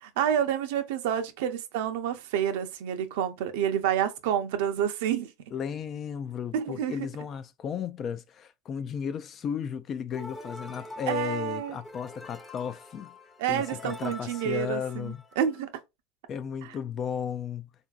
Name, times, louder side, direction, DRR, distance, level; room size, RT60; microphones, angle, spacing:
voice 1, 0.0-5.3 6.5-7.1 11.1-11.8 13.4-15.7, right 9 dB, 80° right, 0.6 m, -29 dB
voice 2, 5.5-13.2 13.5-15.2 16.3-17.7, left 7 dB, 40° left, 0.4 m, -34 dB
sound 1, 10.1-15.6, left 2 dB, 15° left, 0.7 m, -45 dB
3.7 x 2.6 x 2.3 m
supercardioid pair, 105°, 0 cm